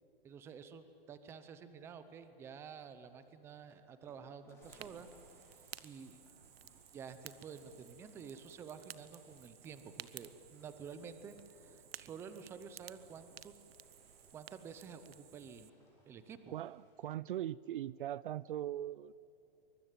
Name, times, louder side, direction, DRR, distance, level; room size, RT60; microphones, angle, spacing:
voice 1, 0.2-5.1 5.8-6.2 6.9-13.5 14.3-15.7 16.1-16.5, right 6 dB, 10° right, 11 dB, 0.6 m, -50 dB
sound 1, 3.0-17.1, left 2 dB, 10° left, 4.3 m, -68 dB
Fire, 4.6-15.7, right 10 dB, 85° right, 1.0 m, -55 dB
voice 2, 16.5-19.1, right 12 dB, 60° right, 21 dB, 0.5 m, -40 dB
24.0 x 22.0 x 9.0 m, 2.8 s
hypercardioid pair, 165°, 30 cm